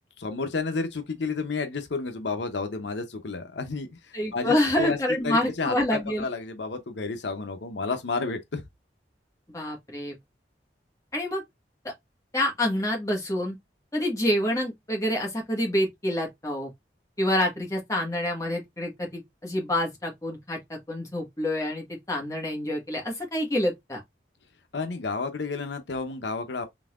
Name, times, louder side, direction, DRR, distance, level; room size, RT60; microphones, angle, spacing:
voice 1, 0.2-3.9 4.3-5.0 5.2-8.6 24.7-26.7, left 4 dB, 80° left, 0.7 m, -31 dB
voice 2, 4.1-6.2 9.5-10.1 11.1-11.4 12.3-13.6 13.9-16.7 17.2-24.0, left 1 dB, 20° left, 1.5 m, -27 dB
4.0 x 3.5 x 2.4 m
head